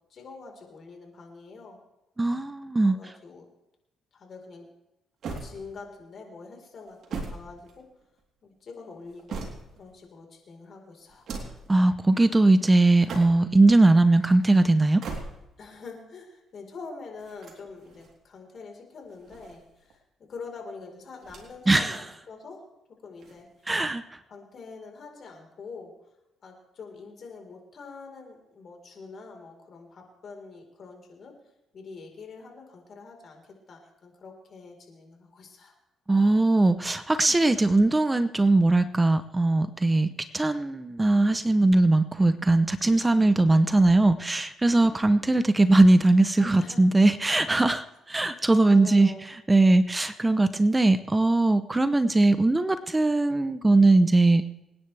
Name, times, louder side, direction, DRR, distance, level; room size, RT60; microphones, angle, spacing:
voice 1, 0.1-1.8 2.9-3.5 4.1-4.7 5.4-7.8 8.4-9.4 9.7-11.3 15.6-20.0 20.3-22.6 23.0-23.5 24.3-25.9 26.4-31.3 31.7-35.8 46.4-46.8 48.3-49.2, left 4 dB, 55° left, 2 dB, 4.2 m, -45 dB
voice 2, 2.2-3.0 11.7-15.0 21.7-22.0 23.7-24.0 36.1-49.1 49.5-54.4, right 2 dB, 15° right, 12 dB, 0.7 m, -20 dB
sound 1, 5.2-6.0 6.8-8.2 8.9-9.9 11.1-11.7 12.9-13.6 14.8-15.7 17.2-18.1 19.0-20.0 21.2-21.8 22.1-22.2 23.2-23.9, right 4 dB, 65° right, 3.4 m, -40 dB
26.5 x 10.0 x 3.4 m, 0.91 s
cardioid pair, 90°, 0 cm